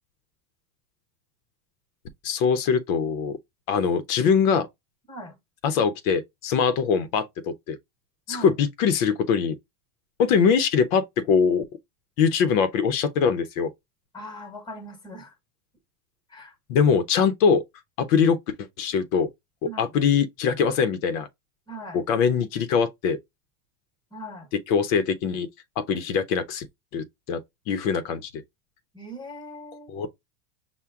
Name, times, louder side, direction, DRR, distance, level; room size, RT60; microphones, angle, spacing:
voice 1, 2.2-3.4 3.7-4.7 5.6-7.8 8.3-9.5 10.2-11.6 12.2-13.7 16.7-17.6 18.0-18.4 18.8-19.3 19.6-21.3 21.9-23.2 24.7-25.5 25.8-26.7 26.9-27.4 27.7-28.3 29.9-30.1, left 6 dB, 60° left, 0.7 m, -22 dB
voice 2, 14.1-15.3 16.3-16.5 19.6-19.9 21.7-22.0 24.1-24.5 28.9-30.1, equal, 10° left, 1.0 m, -40 dB
5.7 x 2.2 x 3.5 m
supercardioid pair, 160°, 46 cm